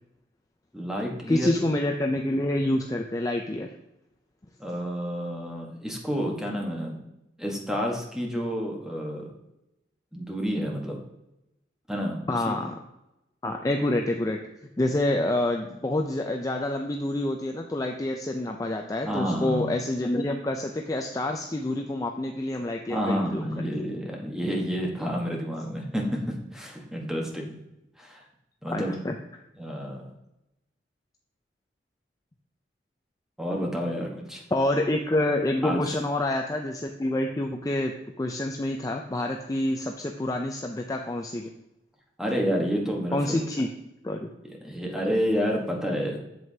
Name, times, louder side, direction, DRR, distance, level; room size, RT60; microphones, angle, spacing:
voice 1, 0.7-1.5 4.6-7.0 7.4-9.3 10.1-11.0 11.9-12.5 19.0-19.7 22.9-27.6 28.0-28.3 28.6-29.0 29.6-30.1 33.4-34.4 35.6-36.0 42.2-43.4 44.4-46.2, equal, 5° right, 0 dB, 1.2 m, -29 dB
voice 2, 1.3-3.7 12.3-12.8 13.4-14.4 14.8-23.6 28.7-29.1 34.5-41.5 43.1-43.7 44.0-44.3, left 1 dB, 20° left, 2 dB, 0.4 m, -27 dB
7.7 x 7.6 x 2.8 m, 0.90 s
head